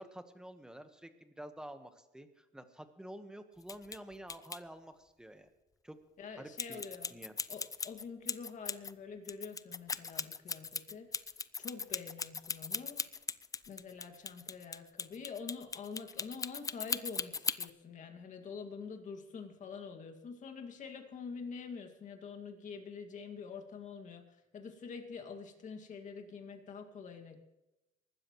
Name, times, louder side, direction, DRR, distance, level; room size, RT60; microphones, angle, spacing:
voice 1, 0.0-5.5 5.8-6.8 7.1-7.3, right 1 dB, 5° right, 8 dB, 1.3 m, -49 dB
Scissors cutting around ears left to right binaural, 3.6-4.0 4.3-4.6 6.6-8.9 9.3-17.7, left 5 dB, 20° left, 0.4 m, -38 dB
voice 2, 6.2-7.2 7.5-11.1 11.6-13.0 13.7-27.4, left 5 dB, 45° left, 4 dB, 2.2 m, -46 dB
23.5 x 12.5 x 3.1 m, 0.94 s
cardioid pair, 110°, 17 cm